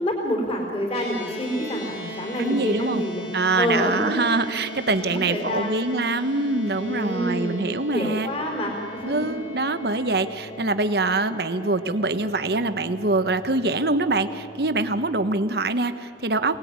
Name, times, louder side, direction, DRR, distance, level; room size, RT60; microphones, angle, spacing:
voice 1, 0.0-3.3 3.6-4.3 5.0-5.8 6.8-9.3, equal, 35° left, 1 dB, 4.2 m, -27 dB
sound 1, 0.9-15.3, equal, 60° left, 3.8 m, -39 dB
voice 2, 2.4-3.0 3.3-8.3 9.0-16.6, right 2 dB, 60° right, 10 dB, 1.3 m, -24 dB
27.0 x 19.0 x 9.6 m, 2.8 s
head